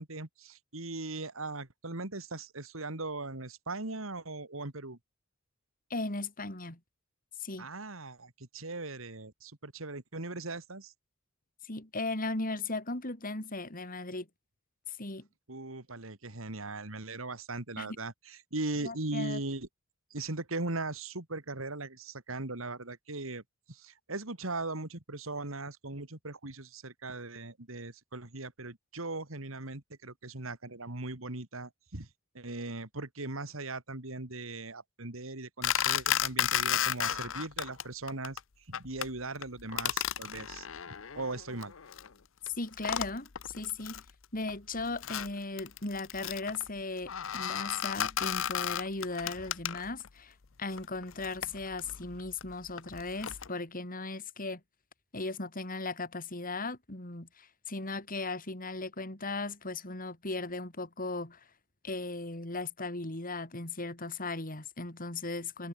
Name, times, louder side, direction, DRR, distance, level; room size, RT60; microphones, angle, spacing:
voice 1, 0.0-5.0 7.6-10.9 15.5-19.7 20.1-23.4 23.7-32.1 32.3-40.7 41.1-41.7, right 2 dB, 80° right, 2.8 m, -39 dB
voice 2, 5.9-6.8 7.4-7.7 11.6-14.3 14.9-15.3 17.8-17.9 18.8-19.4 42.6-44.0 44.3-54.6 55.1-61.4 61.8-65.7, left 3 dB, 45° left, 4.2 m, -37 dB
sound 1, 35.6-37.8 38.1-38.4 38.7-39.1 39.4-42.1 42.5-42.6 42.8-44.1 44.5-50.1 50.7-53.5, left 10 dB, 70° left, 0.8 m, -34 dB
head